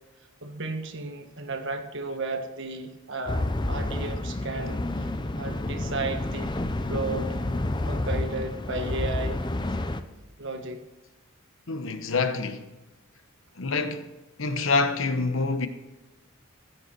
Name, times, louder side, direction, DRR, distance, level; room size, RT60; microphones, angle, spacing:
voice 1, 0.4-5.1 5.4-6.5 6.9-7.4 7.9-9.4 10.4-10.8, right 2 dB, 60° right, 1.4 m, -34 dB
sound 1, 3.3-10.0, left 1 dB, 20° left, 0.6 m, -29 dB
voice 2, 11.7-12.6 13.6-14.1 14.4-15.7, left 3 dB, 65° left, 1.0 m, -26 dB
15.5 x 8.2 x 4.4 m
head